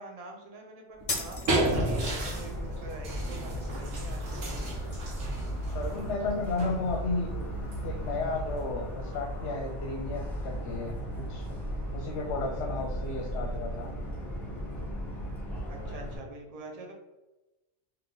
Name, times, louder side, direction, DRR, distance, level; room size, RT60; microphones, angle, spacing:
voice 1, 0.0-5.0 15.7-16.9, right 2 dB, 35° right, 1 dB, 0.8 m, -45 dB
sound 1, 1.0-9.1, right 1 dB, 75° right, 1.3 m, -34 dB
sound 2, 1.1-2.1, left 3 dB, 35° left, 0.7 m, -35 dB
Motor vehicle (road) / Siren, 1.6-16.2, equal, ahead, 1.2 m, -36 dB
voice 2, 5.7-7.5 7.8-11.6 11.9-13.9, left 3 dB, 65° left, 1 dB, 0.8 m, -33 dB
3.6 x 3.0 x 3.8 m, 1.0 s
omnidirectional pair, 1.3 m